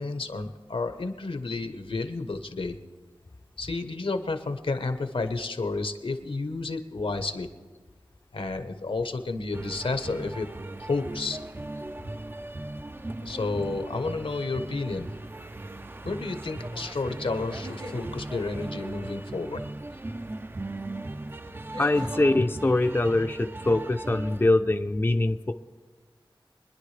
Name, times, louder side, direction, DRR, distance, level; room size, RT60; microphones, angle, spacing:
voice 1, 0.0-2.8 3.6-7.5 8.3-10.5 10.8-11.4 13.2-15.1 16.0-19.6, left 3 dB, 80° left, 8 dB, 1.1 m, -31 dB
sound 1, 9.5-24.5, right 2 dB, 25° right, 0.4 m, -38 dB
sound 2, 14.8-15.3 17.4-18.0 20.3-20.4 21.7-22.3, equal, 75° right, 3.9 m, -41 dB
voice 2, 21.8-25.5, left 2 dB, 25° left, 6 dB, 0.5 m, -23 dB
25.0 x 10.5 x 3.3 m, 1.5 s
wide cardioid pair, 75°, 9 cm